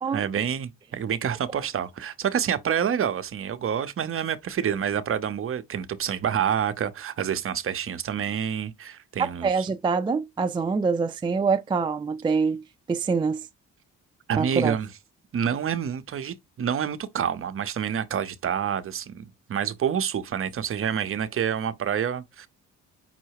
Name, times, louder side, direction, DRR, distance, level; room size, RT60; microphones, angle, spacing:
voice 1, 0.1-9.6 14.3-14.9 15.3-22.5, right 8 dB, 45° right, 0.7 m, -28 dB
voice 2, 9.2-13.5 14.4-14.8, right 5 dB, 15° right, 0.4 m, -25 dB
5.6 x 2.0 x 4.6 m
cardioid pair, 90°, 30 cm